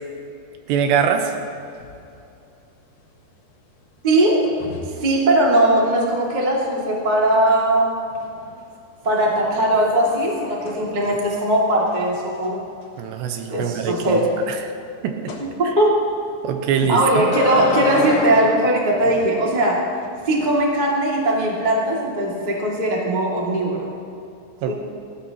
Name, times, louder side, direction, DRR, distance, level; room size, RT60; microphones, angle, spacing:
voice 1, 0.7-1.3 13.0-14.6 15.0-15.3 15.7-15.8 16.4-17.3 24.6-24.7, right 7 dB, 85° right, 5 dB, 3.0 m, -23 dB
sound 1, 0.9-1.5 1.8-2.1 4.4-5.0 8.1-8.6 9.1-11.4 11.9-12.0 12.3-12.5 12.8-12.9 15.3-15.5 16.8-19.2 20.0-20.5, left 2 dB, 65° left, 2.8 m, -31 dB
voice 2, 4.0-4.4 5.0-8.0 9.0-12.6 13.5-14.3 15.6-16.0 16.9-19.8 20.3-23.9 24.6-24.7, right 1 dB, 35° right, -3 dB, 0.7 m, -19 dB
18.5 x 15.0 x 2.9 m, 2.6 s
omnidirectional pair, 5.0 m